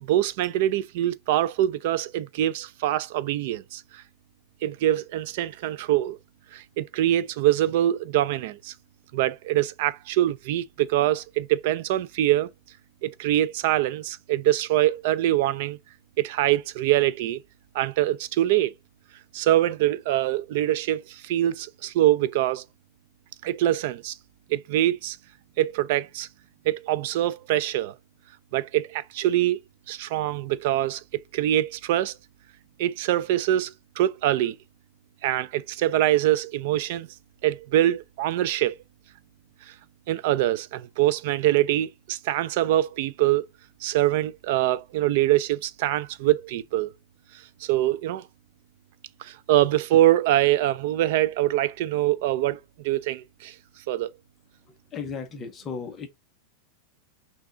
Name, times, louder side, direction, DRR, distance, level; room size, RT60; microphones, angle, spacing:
voice 1, 0.0-4.0 4.6-6.2 6.5-8.7 9.1-12.5 13.0-15.8 16.2-17.4 17.7-18.7 19.3-22.6 23.4-24.1 24.5-25.2 25.6-26.3 26.7-27.9 28.5-29.6 29.9-32.2 32.8-34.6 35.2-37.1 37.4-38.8 40.1-43.4 43.8-46.9 47.6-48.3 49.2-52.6 52.8-53.5 53.9-54.1, right 13 dB, 50° right, 0.4 m, -24 dB
voice 2, 54.9-56.1, left 5 dB, 20° left, 0.7 m, -35 dB
6.0 x 2.3 x 3.8 m
supercardioid pair, 170°, 0 cm